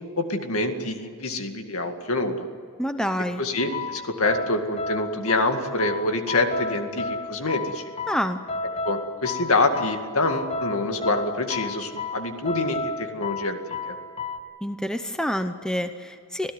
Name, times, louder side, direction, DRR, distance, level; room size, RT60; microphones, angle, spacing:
voice 1, 0.2-2.5 3.4-7.8 8.8-14.0, left 2 dB, 75° left, 6 dB, 2.1 m, -26 dB
voice 2, 2.8-3.4 8.1-8.4 14.6-16.5, equal, 5° left, 8 dB, 0.8 m, -27 dB
sound 1, 3.6-14.4, left 3 dB, 25° left, 1.1 m, -33 dB
26.5 x 16.0 x 9.5 m, 2.3 s
head